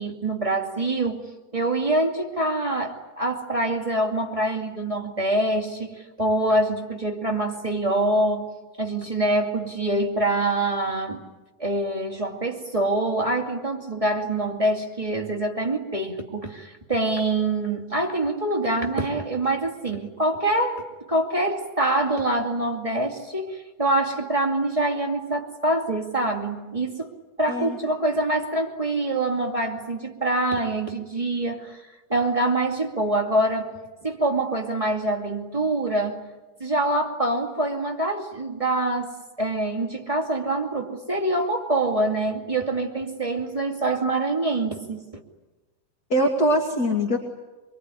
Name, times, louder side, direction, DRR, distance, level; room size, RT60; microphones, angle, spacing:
voice 1, 0.0-11.2 11.6-27.1 27.4-31.8 32.1-36.3 36.6-45.0, right 2 dB, 10° right, 0 dB, 2.0 m, -25 dB
voice 2, 46.1-47.2, equal, 30° left, 1 dB, 2.6 m, -22 dB
24.0 x 23.5 x 10.0 m, 1.2 s
omnidirectional pair, 3.6 m